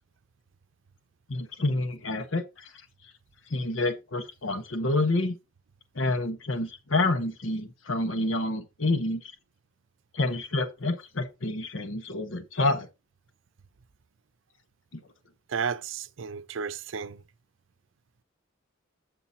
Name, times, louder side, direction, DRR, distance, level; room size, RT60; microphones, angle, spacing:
voice 1, 1.3-2.7 3.5-5.4 5.9-9.2 10.1-12.9 14.9-15.0, left 2 dB, 85° left, 1.3 m, -28 dB
voice 2, 15.5-17.2, right 6 dB, 75° right, 0.5 m, -33 dB
15.0 x 5.2 x 2.8 m
head